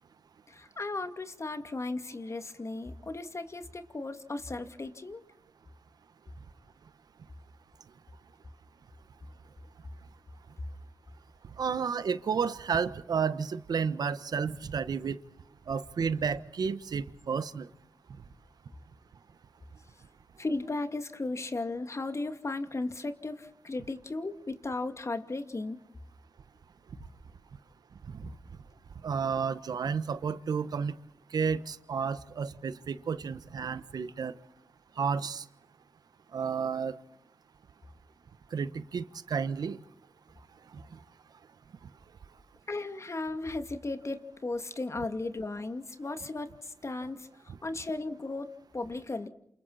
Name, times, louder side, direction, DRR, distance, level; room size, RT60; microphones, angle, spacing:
voice 1, 0.5-5.2 20.4-25.8 42.7-47.3 47.6-49.3, left 2 dB, 45° left, 2.4 m, -36 dB
voice 2, 11.4-15.2 15.7-17.7 28.1-28.3 29.0-31.0 31.3-34.4 35.0-35.4 36.3-36.9 38.5-39.8 40.7-41.0 47.5-47.6, right 6 dB, 75° right, 1.2 m, -32 dB
28.5 x 28.0 x 4.2 m
cardioid pair, 40°, 7 cm